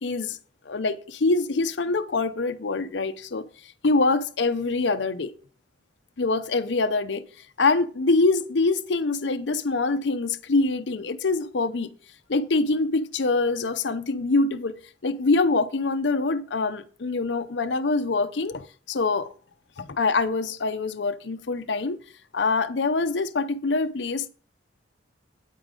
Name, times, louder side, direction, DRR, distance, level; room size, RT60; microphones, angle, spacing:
voice 1, 0.0-0.4 0.7-3.5 3.8-5.3 6.2-7.2 7.6-11.9 12.3-19.3 19.8-22.0 22.3-24.3, left 3 dB, 70° left, 0.6 m, -24 dB
9.1 x 8.3 x 3.8 m
head